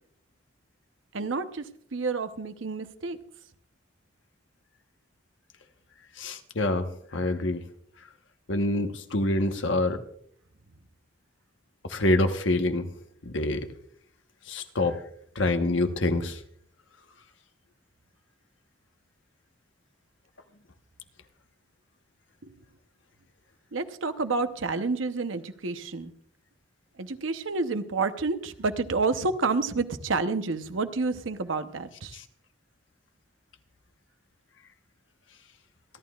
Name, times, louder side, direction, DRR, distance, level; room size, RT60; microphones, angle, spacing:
voice 1, 1.1-1.6 1.9-3.2 23.7-26.1 27.0-32.2, right 3 dB, 85° right, 10 dB, 0.8 m, -29 dB
voice 2, 6.2-7.6 8.5-10.0 11.8-12.9 13.2-13.7 14.5-15.0 15.3-16.4 32.1-32.2, left 2 dB, 75° left, 6 dB, 1.1 m, -26 dB
27.5 x 11.5 x 2.4 m, 0.64 s
head